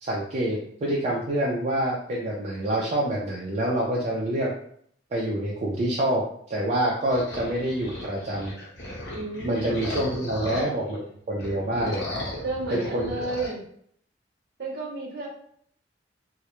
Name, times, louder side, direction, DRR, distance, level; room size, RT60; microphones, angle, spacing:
voice 1, 0.0-4.5 5.1-6.2 6.5-8.5 9.4-11.0 11.3-12.0 12.7-13.1, right 1 dB, 40° right, -5 dB, 0.4 m, -26 dB
sound 1, 7.1-11.0 11.3-13.5, left 1 dB, 65° left, 0.7 m, -35 dB
voice 2, 9.1-9.6 10.2-10.3 12.4-13.6 14.6-15.3, right 2 dB, 60° right, -3 dB, 0.8 m, -32 dB
2.3 x 2.0 x 2.9 m, 0.64 s
head